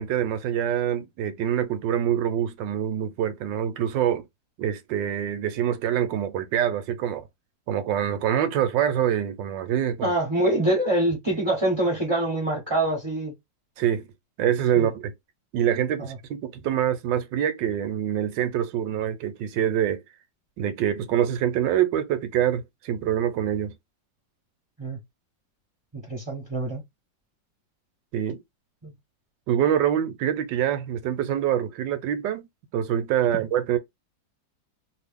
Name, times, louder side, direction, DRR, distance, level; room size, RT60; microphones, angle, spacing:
voice 1, 0.0-4.2 4.6-7.3 7.7-10.1 13.8-14.1 14.4-15.1 15.5-20.0 20.6-23.8 28.1-28.4 29.5-32.5 32.7-33.8, right 10 dB, 75° right, 1.3 m, -25 dB
voice 2, 10.0-13.3 14.7-14.9 16.0-16.1 24.8-25.0 25.9-26.8 28.8-28.9, right 1 dB, 20° right, 0.8 m, -25 dB
3.0 x 2.7 x 3.3 m
omnidirectional pair, 2.1 m